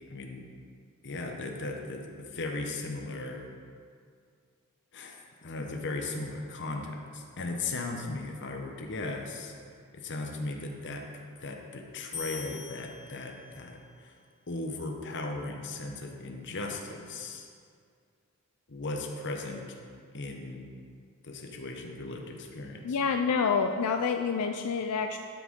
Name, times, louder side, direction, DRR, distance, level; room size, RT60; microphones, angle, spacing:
voice 1, 0.1-0.5 1.0-3.5 4.9-9.5 9.9-14.1 14.5-17.5 18.7-19.7 20.1-20.7 21.2-23.0, left 2 dB, 55° left, 2 dB, 1.0 m, -37 dB
sound 1, 12.1-13.7, left 5 dB, 35° left, 1.9 m, -42 dB
voice 2, 22.8-25.2, left 5 dB, 90° left, 5 dB, 0.4 m, -27 dB
11.5 x 6.2 x 3.7 m, 2.1 s
head